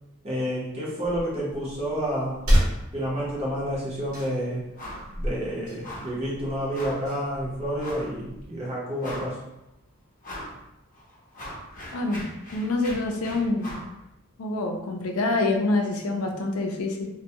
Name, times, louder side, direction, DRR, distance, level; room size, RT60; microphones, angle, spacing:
voice 1, 0.2-2.4 2.9-4.6 5.1-9.4, equal, 30° right, -6 dB, 0.7 m, -29 dB
sound 1, 1.0-8.5, equal, 85° right, 0.9 m, -31 dB
sound 2, 4.8-5.1 5.4-5.5 5.8-6.2 6.7-7.1 7.8-8.1 8.6-8.7 9.0-9.5 10.2-10.6 10.9-13.9, equal, 40° left, 0.6 m, -39 dB
voice 2, 11.9-12.2 12.5-13.7 14.4-17.1, left 2 dB, 85° left, 2 dB, 0.4 m, -26 dB
2.2 x 2.1 x 2.7 m, 0.89 s
head